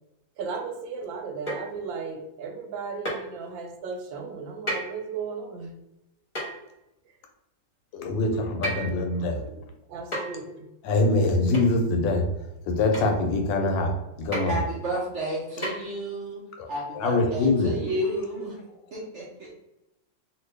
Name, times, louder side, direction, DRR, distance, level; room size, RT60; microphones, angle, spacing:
voice 1, 0.4-5.8 8.1-8.4 8.7-9.6 9.9-10.7, right 5 dB, 90° right, 4 dB, 1.4 m, -36 dB
sound 1, 1.5-1.8 3.1-3.3 4.7-4.9 6.4-6.6 8.6-9.0 10.1-10.4 11.5-11.7 12.9-13.1 14.3-14.5 15.6-15.7, equal, 20° left, 0.9 m, -31 dB
voice 2, 7.9-9.4 10.8-12.3 12.7-13.9 14.2-14.6 16.6-16.7 16.9-17.7, left 2 dB, 80° left, 3 dB, 1.3 m, -24 dB
voice 3, 14.5-16.4 16.7-18.5 18.9-19.5, right 1 dB, 60° right, -5 dB, 0.7 m, -31 dB
2.8 x 2.6 x 3.3 m, 0.93 s
omnidirectional pair, 2.0 m